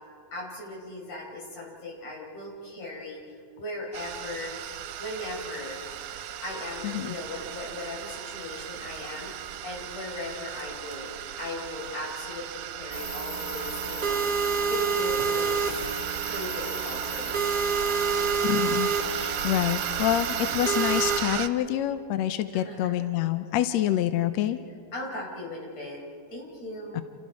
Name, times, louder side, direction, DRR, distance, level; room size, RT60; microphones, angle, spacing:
voice 1, 0.3-4.5 5.0-5.8 6.4-9.3 9.6-15.8 16.3-17.5 22.5-23.0 24.9-26.0 26.3-27.0, left 1 dB, 50° left, -2 dB, 5.7 m, -38 dB
sound 1, 3.9-21.5, right 11 dB, 85° right, 2.5 m, -35 dB
voice 2, 6.8-7.2 18.4-24.6 26.9-27.0, left 12 dB, 75° left, 10 dB, 1.6 m, -27 dB
sound 2, 12.9-21.2, right 4 dB, 35° right, 2.5 m, -29 dB
29.5 x 28.5 x 4.8 m, 2.3 s
omnidirectional pair, 3.8 m